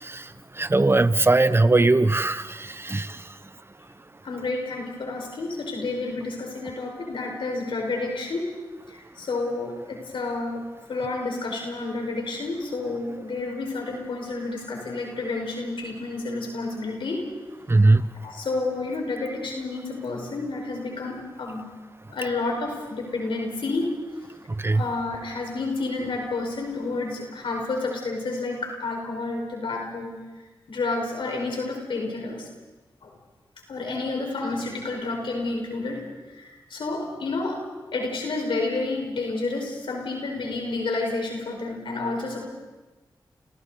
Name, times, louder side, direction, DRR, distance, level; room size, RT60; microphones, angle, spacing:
voice 1, 0.6-3.2 17.7-18.1 24.6-24.8, right 2 dB, 30° right, 13 dB, 1.1 m, -20 dB
voice 2, 4.2-8.5 8.9-17.3 18.2-21.7 22.1-23.9 24.7-30.2 30.7-32.5 33.0-33.1 33.7-37.6 37.9-42.5, left 3 dB, 85° left, 1 dB, 5.1 m, -30 dB
30.0 x 30.0 x 4.1 m, 1.2 s
cardioid pair, 50°, 9 cm